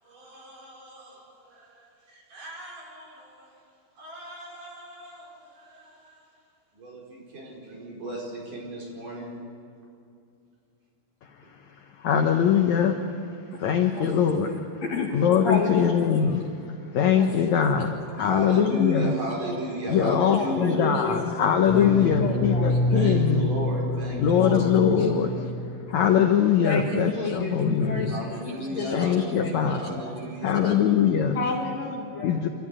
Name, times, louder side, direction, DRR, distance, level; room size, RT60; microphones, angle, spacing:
voice 1, 0.0-3.6 3.9-6.3 6.7-9.3 11.4-11.5 18.2-20.8 22.9-24.7 28.1-31.4, right 1 dB, 55° right, 6.4 m, -35 dB
voice 2, 11.2-14.6 15.1-19.1 19.9-23.5 24.2-25.3 25.6-28.2 28.9-29.8 30.4-31.4 32.2-32.5, left 8 dB, 75° left, 1.7 m, -23 dB
voice 3, 13.9-15.1 15.4-16.4 17.2-17.8 20.3-21.3 21.7-22.9 24.4-24.7 25.0-25.5 26.6-29.8 30.6-30.7 31.3-32.4, left 4 dB, 50° left, 2.6 m, -31 dB
sound 1, 21.6-26.1, left 1 dB, 30° left, 7.1 m, -27 dB
28.5 x 13.5 x 9.8 m
omnidirectional pair, 4.6 m